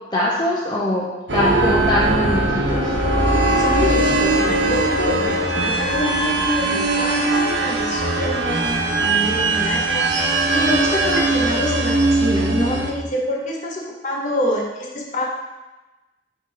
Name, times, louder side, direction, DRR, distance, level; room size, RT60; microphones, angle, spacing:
voice 1, 0.1-2.9, left 1 dB, 25° left, -5 dB, 0.7 m, -22 dB
sound 1, 1.3-12.9, right 2 dB, 90° right, 1.0 m, -20 dB
voice 2, 3.4-15.3, equal, 45° left, -1 dB, 1.1 m, -26 dB
5.5 x 3.8 x 4.8 m, 1.1 s
head